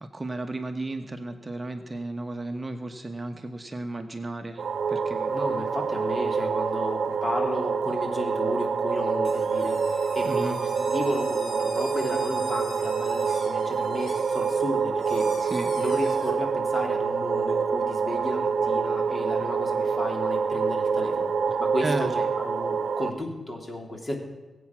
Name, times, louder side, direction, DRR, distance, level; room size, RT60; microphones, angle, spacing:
voice 1, 0.0-4.6 4.9-5.4 10.2-10.6 15.4-15.7 21.8-22.1, right 2 dB, 30° right, 6 dB, 1.1 m, -33 dB
sound 1, 4.6-23.1, right 5 dB, 70° right, 0.8 m, -26 dB
voice 2, 5.3-15.3 15.7-21.3 21.6-24.1, left 1 dB, 30° left, 2 dB, 3.3 m, -33 dB
sound 2, 9.2-16.3, left 3 dB, 75° left, 2.9 m, -45 dB
21.0 x 8.5 x 6.1 m, 1.2 s
cardioid pair, 80°, 0 cm